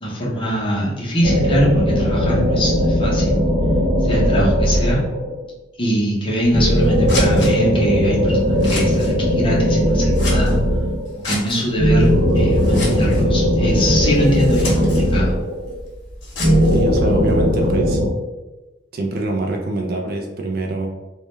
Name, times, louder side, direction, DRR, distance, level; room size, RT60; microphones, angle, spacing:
voice 1, 0.0-3.4 4.0-5.0 5.8-10.6 11.2-15.4, equal, 25° left, -5 dB, 0.6 m, -22 dB
sound 1, 1.2-5.4 6.5-11.1 11.8-15.8 16.4-18.1, equal, 70° right, 0.7 m, -18 dB
Scissors, 6.3-17.8, left 2 dB, 65° left, 0.8 m, -34 dB
voice 2, 16.7-18.0 18.9-20.9, right 2 dB, 50° right, 2 dB, 0.3 m, -24 dB
2.2 x 2.1 x 3.0 m, 1.1 s
head